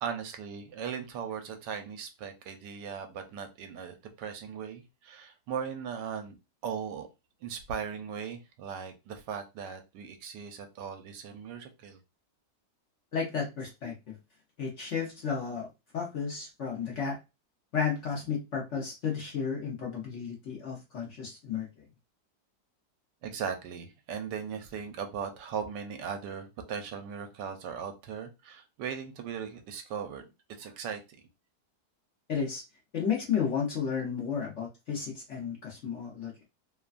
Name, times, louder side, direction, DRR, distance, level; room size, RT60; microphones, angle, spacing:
voice 1, 0.0-6.4 6.6-7.1 7.4-12.0 23.2-30.2 30.6-31.0, right 7 dB, 80° right, 6 dB, 1.2 m, -38 dB
voice 2, 13.1-14.1 14.6-15.7 15.9-17.2 17.7-21.7 32.3-32.6 32.9-36.3, left 6 dB, 55° left, -2 dB, 0.9 m, -33 dB
3.1 x 2.2 x 2.4 m, 0.25 s
omnidirectional pair, 1.9 m